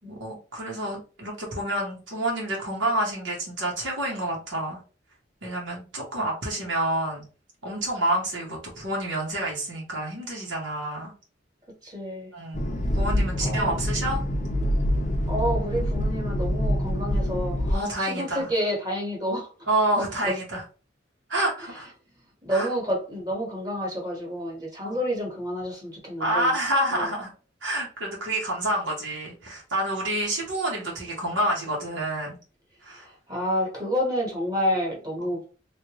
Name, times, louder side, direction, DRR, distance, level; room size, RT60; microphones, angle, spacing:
voice 1, 0.1-4.8 5.4-7.2 7.6-11.1 12.3-12.7 12.9-14.2 17.7-18.5 19.7-20.6 21.3-21.9 22.5-22.7 24.8-25.0 26.2-27.3 27.6-32.4 32.8-33.1, right 1 dB, 80° right, 1.2 m, -28 dB
voice 2, 11.8-12.3 13.4-13.8 15.3-19.5 20.0-20.3 21.6-21.8 22.4-26.6 26.9-27.1 32.9-35.4, equal, 20° right, 1.3 m, -29 dB
sound 1, 12.5-17.7, equal, 40° left, 0.6 m, -25 dB
3.2 x 2.5 x 3.0 m
head